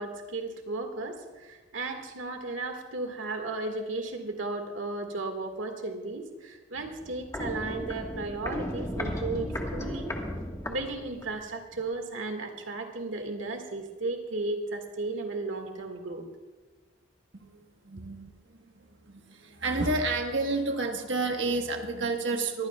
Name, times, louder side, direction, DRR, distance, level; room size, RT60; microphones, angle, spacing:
voice 1, 0.0-10.2 10.7-16.3, right 3 dB, 90° right, 4 dB, 1.8 m, -35 dB
Walk footsteps, 6.8-11.5 11.7-11.8, left 1 dB, 15° left, 1.4 m, -35 dB
voice 2, 17.8-18.6 19.1-22.7, right 3 dB, 70° right, 4 dB, 1.3 m, -30 dB
22.0 x 15.5 x 2.3 m, 1.3 s
head